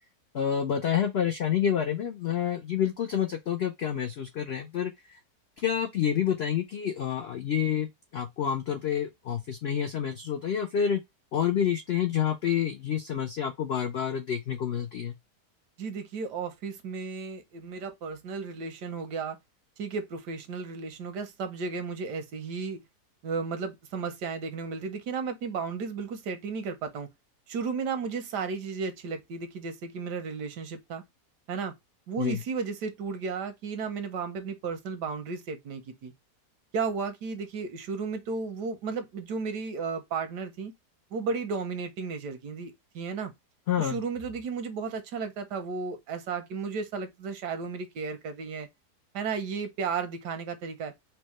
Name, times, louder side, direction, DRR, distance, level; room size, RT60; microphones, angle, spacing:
voice 1, 0.3-4.9 5.6-11.0 11.3-15.1 32.2-32.4 43.7-44.0, left 9 dB, 85° left, 0.5 m, -28 dB
voice 2, 15.8-19.4 19.8-22.8 23.2-27.1 27.5-31.0 31.5-31.8 32.1-36.1 36.7-40.7 41.1-43.3 43.8-48.7 49.1-50.9, right 5 dB, 90° right, 1.5 m, -34 dB
4.5 x 2.2 x 3.0 m
omnidirectional pair, 1.7 m